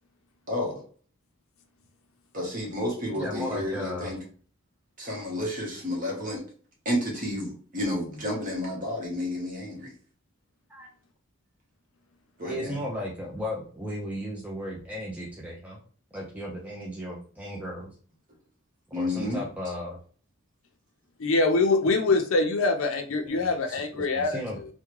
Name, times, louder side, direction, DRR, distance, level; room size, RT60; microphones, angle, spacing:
voice 1, 0.5-0.8 2.3-4.2 5.0-6.4 6.8-9.9 12.4-12.8 18.9-19.4, left 1 dB, 40° right, 1.2 m, -31 dB
voice 2, 3.1-4.1 10.7-10.9 12.5-15.8 16.1-17.9 19.0-20.0 23.3-24.6, equal, 5° right, 0.5 m, -35 dB
voice 3, 21.2-24.7, left 3 dB, 70° left, 0.6 m, -24 dB
3.4 x 2.2 x 3.1 m
head